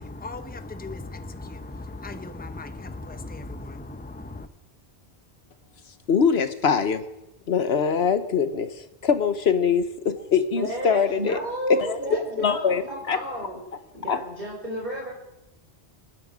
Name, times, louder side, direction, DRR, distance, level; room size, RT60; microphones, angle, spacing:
voice 1, 0.0-4.5, left 2 dB, 10° left, 9 dB, 0.8 m, -37 dB
voice 2, 6.1-7.0 7.5-11.4 11.8-12.8 13.1-13.2 14.1-14.2, left 6 dB, 70° left, 11 dB, 1.3 m, -23 dB
voice 3, 10.6-13.6 13.9-15.1, right 1 dB, 55° right, -5 dB, 5.0 m, -32 dB
27.0 x 9.2 x 5.1 m, 0.94 s
omnidirectional pair, 1.1 m